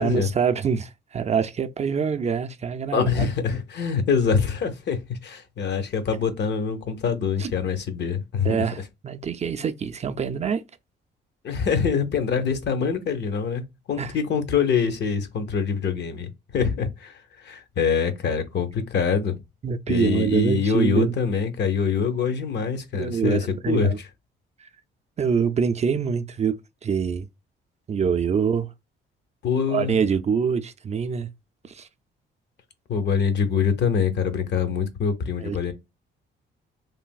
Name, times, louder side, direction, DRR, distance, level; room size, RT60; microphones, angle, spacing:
voice 1, 0.0-3.1 7.4-7.5 8.4-10.6 14.0-14.1 19.6-21.2 22.9-24.0 24.6-24.7 25.2-26.6 26.8-27.3 27.9-28.7 29.7-31.3 31.7-31.9 35.4-35.6, right 6 dB, 35° right, 0.4 m, -25 dB
voice 2, 2.9-8.6 11.4-19.4 19.9-24.1 29.4-30.0 32.9-35.7, left 6 dB, 60° left, 0.7 m, -24 dB
3.2 x 2.6 x 2.2 m
cardioid pair, 90°, 20 cm